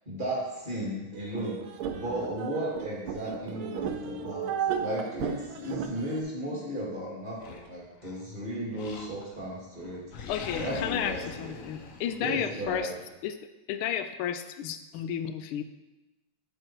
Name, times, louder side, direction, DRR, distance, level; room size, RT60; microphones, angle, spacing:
voice 1, 0.1-1.6 1.9-4.5 4.8-10.0 10.6-11.5 12.2-12.9, right 1 dB, 25° right, -4 dB, 2.0 m, -35 dB
sound 1, 1.1-6.2, right 7 dB, 80° right, 1.4 m, -34 dB
Animal, 7.4-8.2 8.7-9.5 9.8-12.8, left 4 dB, 60° left, 0.8 m, -42 dB
voice 2, 10.3-12.9 13.2-13.4 13.7-15.6, left 9 dB, 85° left, 9 dB, 1.5 m, -32 dB
7.7 x 5.3 x 4.5 m, 1.0 s
omnidirectional pair, 2.3 m